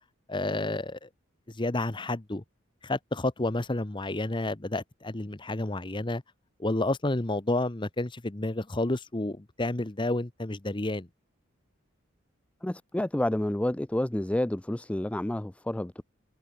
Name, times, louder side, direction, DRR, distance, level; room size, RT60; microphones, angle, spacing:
voice 1, 0.3-1.1 1.5-2.4 2.8-6.2 6.6-11.1, left 2 dB, 25° left, 1.0 m, -30 dB
voice 2, 12.6-16.0, left 1 dB, 5° left, 0.3 m, -29 dB
head